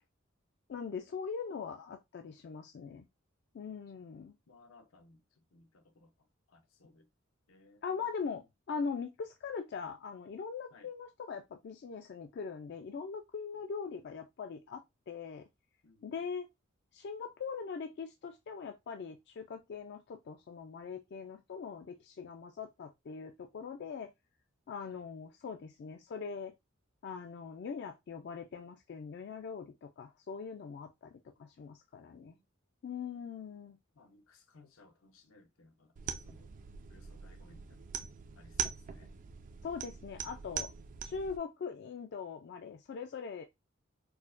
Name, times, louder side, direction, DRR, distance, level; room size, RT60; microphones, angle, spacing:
voice 1, 0.7-3.1 3.5-4.4 7.8-15.5 16.0-16.5 16.9-24.1 24.7-26.5 27.0-32.4 32.8-33.8 39.6-40.7 41.0-43.4, left 5 dB, 55° left, 0.3 m, -41 dB
voice 2, 4.5-5.2 5.5-6.1 6.5-7.1 7.5-7.8 10.7-10.9 15.8-16.1 24.9-25.0 32.1-32.4 34.0-36.5 36.9-38.1 38.4-39.1, left 3 dB, 85° left, 0.7 m, -62 dB
sound 1, 36.0-41.4, right 8 dB, 40° right, 0.3 m, -42 dB
4.6 x 2.1 x 2.4 m
head